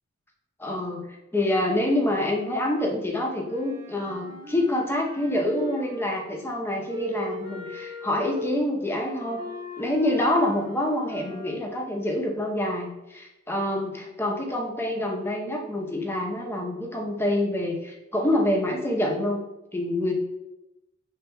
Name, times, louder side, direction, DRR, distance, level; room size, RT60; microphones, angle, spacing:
voice 1, 0.6-1.1 1.3-9.4 9.8-19.4 19.7-20.1, left 1 dB, 10° left, 0 dB, 0.7 m, -26 dB
Wind instrument woodwind instrument, 3.4-6.3 6.9-11.7, left 2 dB, 50° right, 1.0 m, -39 dB
6.8 x 3.3 x 2.2 m, 0.94 s
head